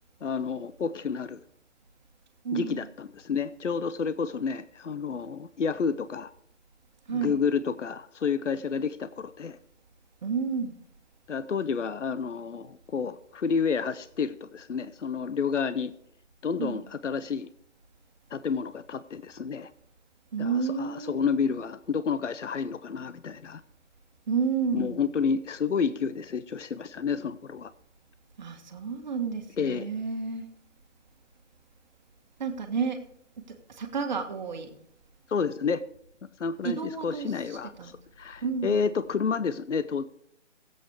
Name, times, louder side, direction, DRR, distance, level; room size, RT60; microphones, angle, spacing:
voice 1, 0.2-1.4 2.5-6.3 7.1-9.6 11.3-15.9 16.4-17.5 18.3-19.7 20.4-23.6 24.7-27.7 29.6-29.9 35.3-35.8 36.4-40.0, left 6 dB, 80° left, 14 dB, 0.7 m, -30 dB
voice 2, 2.4-2.9 7.1-7.4 10.2-10.7 16.6-16.9 20.3-21.6 24.3-25.0 28.4-30.4 32.4-33.0 33.7-34.7 36.6-37.9 38.4-38.8, right 5 dB, 40° right, 5 dB, 1.6 m, -31 dB
16.5 x 8.2 x 4.8 m, 0.73 s
figure-of-eight pair, 145°, 36 cm